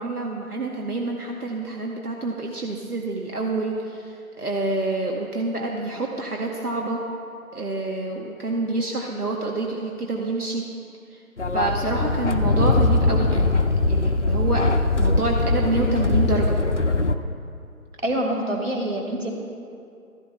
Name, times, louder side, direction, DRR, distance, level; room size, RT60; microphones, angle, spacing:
voice 1, 0.0-7.0 7.5-10.6 11.1-11.2 11.5-14.6 15.0-16.6, right 2 dB, 85° right, 0 dB, 1.2 m, -27 dB
sound 1, 11.4-17.2, left 2 dB, 55° left, 0.5 m, -21 dB
voice 2, 18.0-19.3, right 1 dB, 55° right, 0 dB, 2.1 m, -25 dB
14.5 x 11.5 x 2.3 m, 2.5 s
figure-of-eight pair, 165°, 45 cm